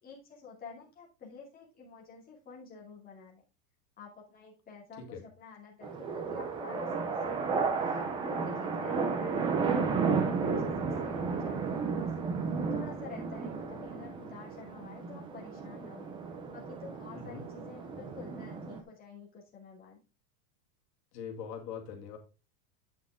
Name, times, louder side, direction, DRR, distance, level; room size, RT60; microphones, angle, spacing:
voice 1, 0.0-3.4 4.0-16.1 16.5-20.0, left 5 dB, 20° left, -3 dB, 2.5 m, -50 dB
sound 1, 5.8-18.8, right 5 dB, 10° right, 0.4 m, -33 dB
voice 2, 17.1-17.4 21.1-22.2, left 6 dB, 70° left, 2 dB, 2.2 m, -42 dB
8.7 x 5.8 x 3.6 m, 0.30 s
supercardioid pair, 160°, 49 cm